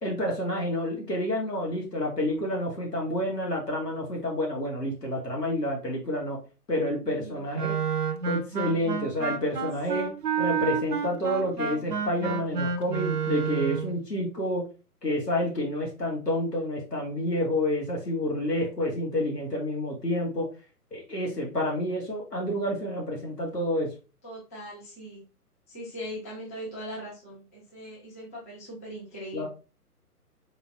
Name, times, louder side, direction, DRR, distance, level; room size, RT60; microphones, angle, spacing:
voice 1, 0.0-6.4 6.7-7.8 8.3-10.1 10.4-14.6 15.0-20.5 20.9-23.9 29.3-29.5, left 1 dB, 90° left, -2 dB, 2.2 m, -29 dB
voice 2, 7.1-7.8 9.9-10.0 24.2-25.2 25.7-29.5, equal, 10° left, -6 dB, 0.6 m, -40 dB
Wind instrument woodwind instrument, 7.5-13.9, right 6 dB, 80° right, 0.8 m, -29 dB
4.2 x 3.3 x 2.6 m, 0.32 s
figure-of-eight pair, 135°, 47 cm